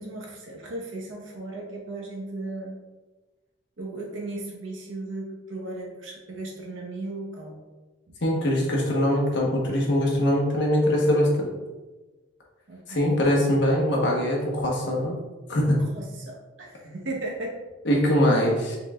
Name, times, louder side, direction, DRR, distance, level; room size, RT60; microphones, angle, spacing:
voice 1, 0.0-2.7 3.8-7.6 8.1-8.2 12.7-13.1 15.7-17.5, right 2 dB, 85° right, -2 dB, 1.1 m, -36 dB
voice 2, 8.2-11.5 12.9-15.2 15.5-15.7 17.8-18.8, left 1 dB, 65° left, -2 dB, 1.1 m, -22 dB
5.3 x 3.9 x 2.4 m, 1.2 s
head